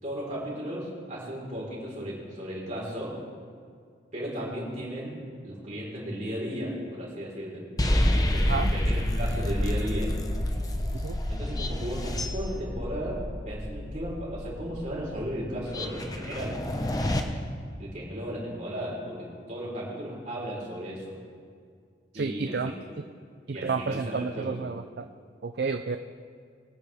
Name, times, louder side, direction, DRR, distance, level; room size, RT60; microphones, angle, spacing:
voice 1, 0.0-3.2 4.1-5.2 5.4-7.6 8.3-10.2 11.3-16.6 17.8-21.1 22.1-22.7 23.5-24.6, equal, 40° right, -5 dB, 4.2 m, -35 dB
sound 1, 7.8-17.2, left 1 dB, 20° left, 0.8 m, -29 dB
voice 2, 22.1-22.7 23.5-25.1 25.4-26.0, right 4 dB, 60° right, 8 dB, 0.4 m, -31 dB
22.5 x 9.5 x 3.5 m, 2.2 s
head